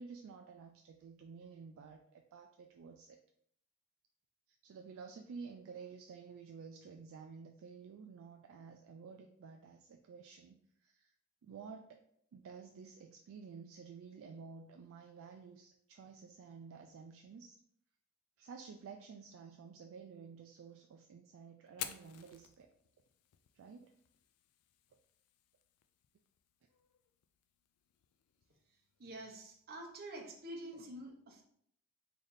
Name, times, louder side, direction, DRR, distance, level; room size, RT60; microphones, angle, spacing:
voice 1, 0.0-3.2 4.5-11.1 11.4-12.0 12.3-17.6 18.4-22.7 23.5-23.9, right 5 dB, 65° right, 4 dB, 0.3 m, -52 dB
Fire, 21.7-29.6, left 11 dB, 80° left, 0.3 m, -53 dB
voice 2, 29.0-31.4, right 1 dB, 45° right, 0 dB, 0.8 m, -47 dB
3.3 x 2.6 x 3.9 m, 0.69 s
head